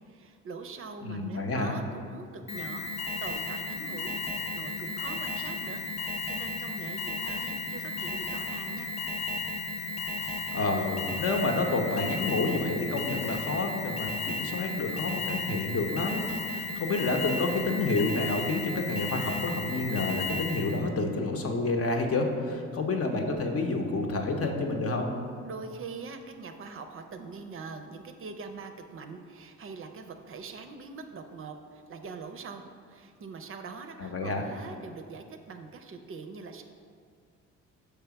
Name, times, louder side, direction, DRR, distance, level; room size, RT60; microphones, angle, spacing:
voice 1, 0.1-2.9 3.2-8.9 25.4-36.6, right 4 dB, 45° right, 6 dB, 0.5 m, -43 dB
voice 2, 1.0-1.7 10.2-25.1 34.0-34.4, left 2 dB, 50° left, 3 dB, 0.8 m, -29 dB
Alarm, 2.5-20.9, left 3 dB, 20° left, 0.4 m, -34 dB
5.8 x 3.3 x 5.8 m, 2.2 s
cardioid pair, 90°, 30 cm